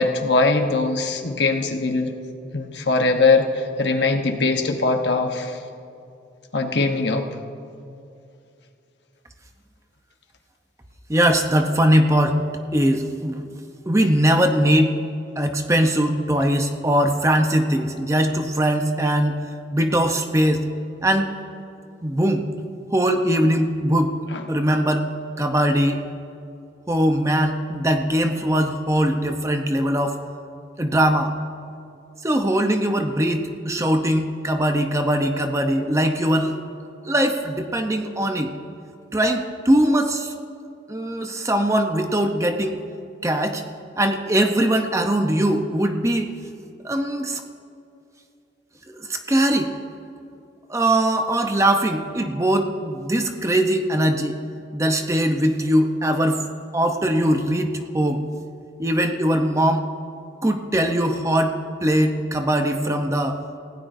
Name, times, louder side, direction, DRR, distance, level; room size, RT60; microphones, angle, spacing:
voice 1, 0.0-2.1 2.5-5.6 6.5-7.3 24.3-24.4, left 3 dB, 70° left, 4 dB, 1.2 m, -21 dB
voice 2, 11.1-12.4 12.7-13.5 13.9-15.0 15.4-19.3 19.7-20.7 21.0-21.3 22.0-22.5 22.9-24.2 24.5-25.1 25.4-26.0 26.9-30.2 30.8-31.3 32.2-36.5 37.0-38.5 39.1-40.3 40.9-42.8 43.2-43.6 44.0-46.3 46.8-47.4 48.9-49.7 50.7-54.4 54.7-56.4 56.7-58.2 58.8-59.8 60.4-63.4, right 1 dB, 15° right, 5 dB, 0.8 m, -21 dB
28.0 x 16.5 x 2.7 m, 2.5 s
head